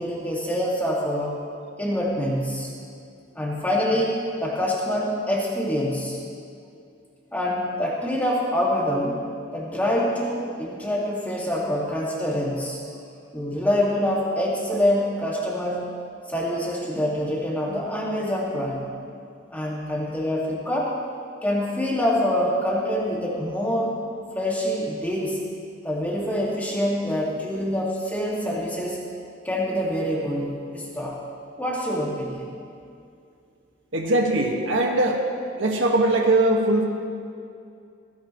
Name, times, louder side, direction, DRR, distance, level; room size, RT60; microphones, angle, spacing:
voice 1, 0.0-1.4 1.8-2.7 3.3-6.2 7.3-9.2 9.5-12.8 13.3-15.9 16.3-18.9 19.5-20.9 21.4-24.0 24.3-25.4 25.8-29.1 29.4-31.2 31.6-32.5, equal, 10° left, -4 dB, 2.1 m, -25 dB
voice 2, 33.9-35.2 35.6-36.8, right 2 dB, 90° right, 1 dB, 1.7 m, -21 dB
16.5 x 16.0 x 3.2 m, 2.4 s
head